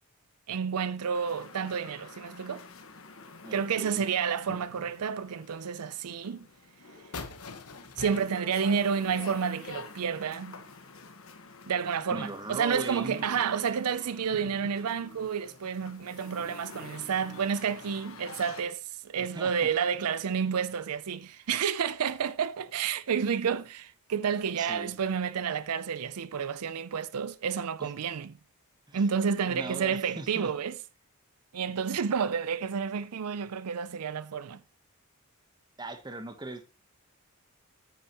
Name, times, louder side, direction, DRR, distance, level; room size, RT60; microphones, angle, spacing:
voice 1, 0.5-2.6 3.5-6.5 8.0-10.6 11.7-28.4 28.9-30.7 31.5-34.6, right 7 dB, 90° right, 0.5 m, -30 dB
sound 1, 1.1-18.6, left 4 dB, 65° left, 1.4 m, -48 dB
voice 2, 3.4-4.0 12.1-13.3 19.2-19.7 24.6-24.9 27.8-27.9 28.9-29.0 29.5-30.5 35.8-36.7, right 1 dB, 20° right, 1.0 m, -39 dB
sound 2, 7.1-9.8, left 4 dB, 85° left, 1.2 m, -44 dB
9.2 x 8.9 x 3.0 m
head